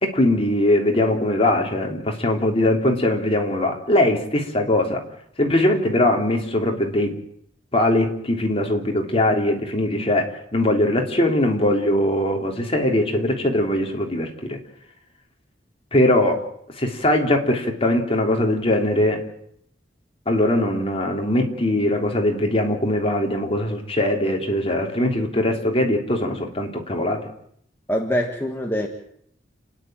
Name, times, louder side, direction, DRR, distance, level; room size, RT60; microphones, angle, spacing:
voice 1, 0.0-5.0 5.4-7.2 7.7-14.6 15.9-16.4 16.8-19.2 20.2-27.2, left 1 dB, 30° left, 2 dB, 3.3 m, -21 dB
voice 2, 27.9-28.9, equal, 10° left, 1 dB, 1.6 m, -24 dB
30.0 x 10.5 x 9.1 m, 0.69 s
head